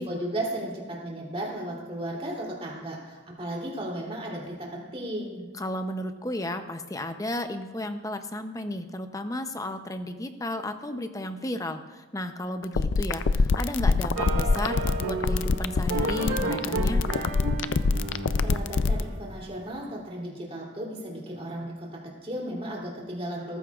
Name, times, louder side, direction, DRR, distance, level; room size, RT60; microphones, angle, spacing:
voice 1, 0.0-5.5 18.1-23.6, right 1 dB, 30° right, -3 dB, 3.1 m, -35 dB
voice 2, 5.5-17.0, left 1 dB, 15° left, 8 dB, 0.6 m, -33 dB
sound 1, 12.6-19.0, left 4 dB, 60° left, 0.4 m, -24 dB
sound 2, 14.2-19.4, right 2 dB, 85° right, 2.1 m, -32 dB
18.5 x 14.5 x 2.4 m, 1.3 s
head